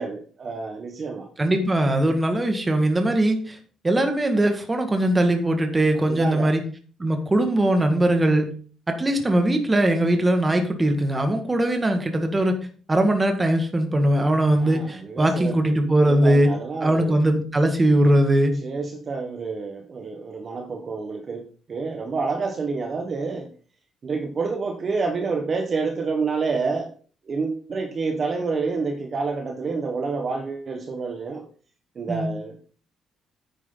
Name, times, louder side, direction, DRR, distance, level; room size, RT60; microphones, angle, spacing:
voice 1, 0.0-1.3 5.9-6.5 14.5-17.2 18.6-23.5 24.0-26.9 27.3-31.4 31.9-32.8, right 4 dB, 35° right, 4 dB, 1.3 m, -28 dB
voice 2, 1.4-3.6 3.8-6.6 7.0-8.5 8.9-12.6 12.9-16.5 16.8-18.5 32.1-32.3, right 1 dB, 15° right, 6 dB, 1.9 m, -20 dB
9.5 x 9.3 x 3.9 m, 0.41 s
cardioid pair, 140°, 0 cm